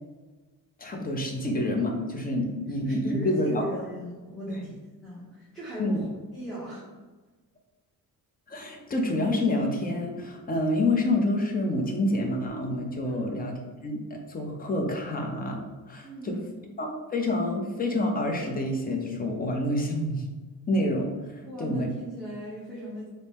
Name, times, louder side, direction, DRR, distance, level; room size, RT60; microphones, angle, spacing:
voice 1, 0.8-3.6 4.5-4.7 5.8-6.0 8.5-16.4 16.8-20.2 20.7-21.9, left 1 dB, 25° left, 1 dB, 0.5 m, -28 dB
voice 2, 2.8-4.7 5.0-6.8 13.0-13.3 16.0-16.7 21.4-23.1, equal, ahead, -9 dB, 0.8 m, -38 dB
4.1 x 2.7 x 3.5 m, 1.3 s
cardioid pair, 160°, 37 cm